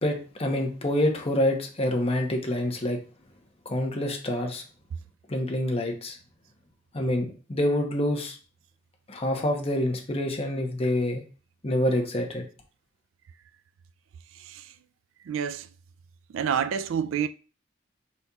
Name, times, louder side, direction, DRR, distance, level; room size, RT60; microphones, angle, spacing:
voice 1, 0.0-3.0 3.6-4.6 5.3-6.2 6.9-8.4 9.1-11.2 11.6-12.4, left 1 dB, 30° left, 0.8 m, -27 dB
voice 2, 15.3-15.7 16.3-17.3, right 7 dB, 75° right, 0.3 m, -28 dB
5.3 x 4.2 x 2.3 m
head